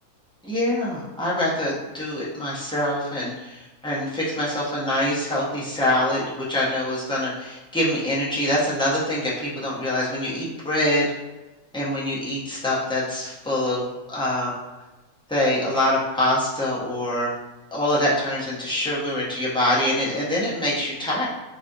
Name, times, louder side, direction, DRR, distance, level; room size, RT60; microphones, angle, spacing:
voice 1, 0.4-11.1 11.7-14.5 15.3-17.3 17.7-21.3, left 1 dB, 5° left, -8 dB, 0.4 m, -24 dB
4.9 x 2.4 x 2.7 m, 1.1 s
omnidirectional pair, 1.6 m